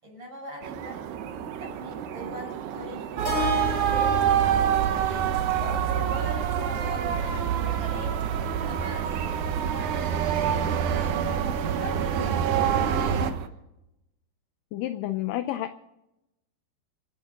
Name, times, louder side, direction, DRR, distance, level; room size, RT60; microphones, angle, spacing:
voice 1, 0.0-13.4, equal, 30° right, -1 dB, 6.9 m, -41 dB
sound 1, 0.6-13.5, right 9 dB, 85° right, 3.0 m, -39 dB
Keyboard (musical), 3.2-7.5, left 5 dB, 20° left, 4.3 m, -37 dB
sound 2, 3.2-13.3, right 9 dB, 65° right, 2.1 m, -26 dB
voice 2, 14.7-15.7, left 14 dB, 80° left, 10 dB, 2.0 m, -30 dB
27.0 x 9.4 x 5.1 m, 0.89 s
omnidirectional pair, 4.5 m